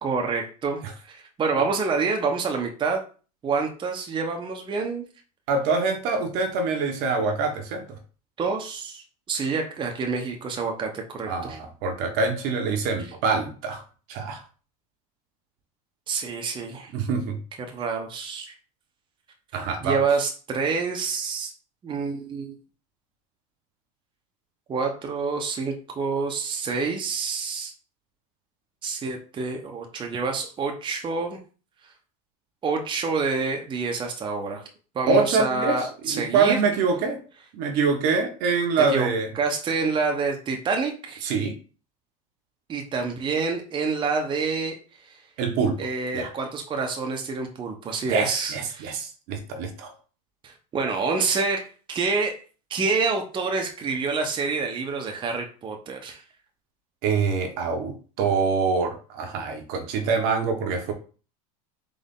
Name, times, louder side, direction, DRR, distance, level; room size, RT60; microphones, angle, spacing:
voice 1, 0.0-3.0 3.4-5.0 8.4-11.6 16.1-16.9 17.6-18.5 19.8-21.5 21.8-22.6 24.7-27.7 28.8-31.4 32.6-34.6 34.9-36.6 38.8-39.1 39.3-41.3 42.7-44.8 45.8-49.0 50.4-52.4 52.7-56.2, right 4 dB, 25° right, 2 dB, 0.9 m, -27 dB
voice 2, 5.5-8.0 11.2-13.8 14.1-14.4 16.9-17.4 19.5-20.0 35.1-37.2 37.5-39.3 41.2-41.5 45.4-46.3 48.0-49.9 57.0-60.9, right 4 dB, 60° right, 5 dB, 1.1 m, -25 dB
4.0 x 3.3 x 3.7 m, 0.38 s
supercardioid pair, 115°, 19 cm